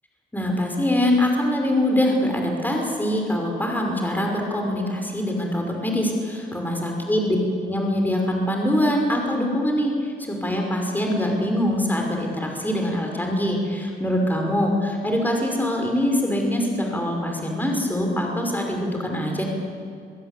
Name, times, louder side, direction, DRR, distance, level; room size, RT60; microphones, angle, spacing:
voice 1, 0.3-7.4 7.6-19.5, left 1 dB, 10° left, 1 dB, 5.4 m, -23 dB
22.5 x 22.5 x 8.3 m, 2.3 s
supercardioid pair, 65°, 19 cm